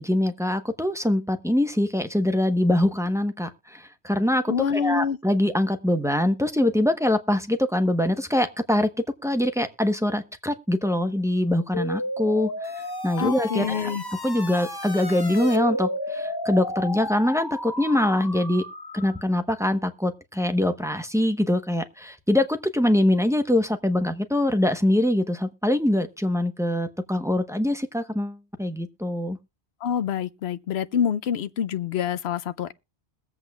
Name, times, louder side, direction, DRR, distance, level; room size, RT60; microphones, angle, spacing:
voice 1, 0.0-8.9 9.2-13.9 14.2-18.6 18.9-29.4, left 1 dB, 5° right, 0.9 m, -24 dB
voice 2, 4.5-5.2 13.2-14.0 29.8-32.7, left 7 dB, 75° left, 1.0 m, -26 dB
sound 1, 11.7-19.2, left 1 dB, 20° left, 1.2 m, -32 dB
21.5 x 8.0 x 2.3 m
omnidirectional pair, 1.1 m